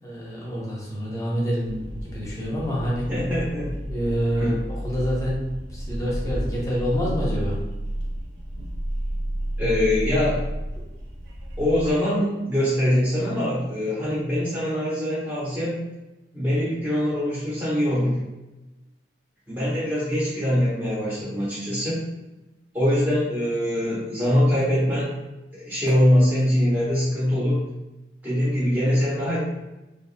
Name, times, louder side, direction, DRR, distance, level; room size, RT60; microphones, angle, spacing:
voice 1, 0.0-3.1 3.8-5.4 5.7-7.6, equal, 20° left, -6 dB, 0.8 m, -27 dB
sound 1, 1.6-11.9, equal, 70° right, 0.5 m, -31 dB
voice 2, 3.1-3.8 4.4-4.6 9.6-10.4 11.6-15.8 16.3-18.2 19.5-22.0 22.7-25.2 25.7-27.6 28.2-29.4, left 1 dB, 10° right, -9 dB, 0.8 m, -23 dB
2.8 x 2.3 x 2.6 m, 1.0 s
head